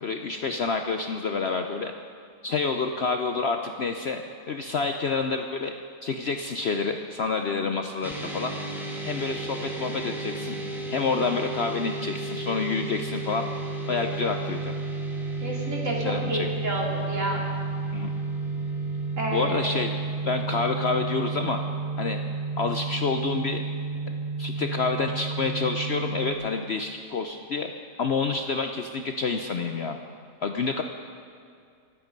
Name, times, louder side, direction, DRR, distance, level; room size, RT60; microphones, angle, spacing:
voice 1, 0.0-1.9 2.4-4.2 4.5-5.7 6.0-8.5 9.0-10.6 10.9-13.5 13.9-14.7 16.0-16.5 17.9-18.1 19.3-19.9 20.2-21.6 22.0-22.2 22.6-23.6 24.1-24.2 24.4-27.7 28.0-30.0 30.4-30.8, left 4 dB, 55° left, 5 dB, 0.8 m, -28 dB
sound 1, 8.0-26.3, right 3 dB, ahead, 1.8 m, -32 dB
voice 2, 15.4-17.4 19.2-19.7, right 1 dB, 55° right, -2 dB, 2.8 m, -30 dB
25.0 x 8.6 x 5.2 m, 2.3 s
omnidirectional pair, 1.6 m